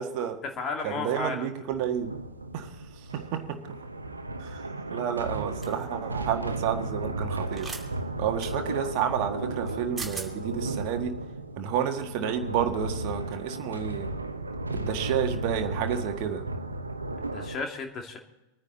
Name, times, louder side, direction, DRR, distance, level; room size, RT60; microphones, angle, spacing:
voice 1, 0.0-0.4 0.8-2.1 2.5-2.7 3.1-3.6 4.4-7.7 8.2-11.1 11.6-14.1 14.7-16.4, right 9 dB, 45° right, 5 dB, 1.6 m, -30 dB
voice 2, 0.6-1.5 17.3-18.2, left 4 dB, 30° left, 3 dB, 2.5 m, -33 dB
sound 1, 1.7-17.6, right 2 dB, 80° right, 0.9 m, -34 dB
sound 2, 5.6-5.8 7.5-7.8 8.4-8.5 9.7-9.8 10.0-10.3, right 3 dB, 10° right, 2.6 m, -37 dB
25.5 x 9.8 x 4.0 m, 1.0 s
figure-of-eight pair, 90°, 0 cm